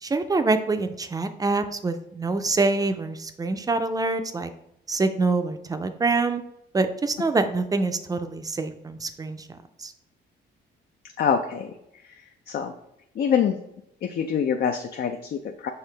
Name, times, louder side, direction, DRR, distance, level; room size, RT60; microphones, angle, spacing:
voice 1, 0.0-4.5 4.9-6.4 6.7-9.9, right 3 dB, 20° right, 9 dB, 0.4 m, -25 dB
voice 2, 11.2-11.7 12.1-12.2 12.5-12.7 13.2-13.6 14.0-15.7, left 7 dB, 55° left, 5 dB, 0.4 m, -25 dB
5.7 x 2.7 x 3.3 m, 0.80 s
cardioid pair, 90°, 20 cm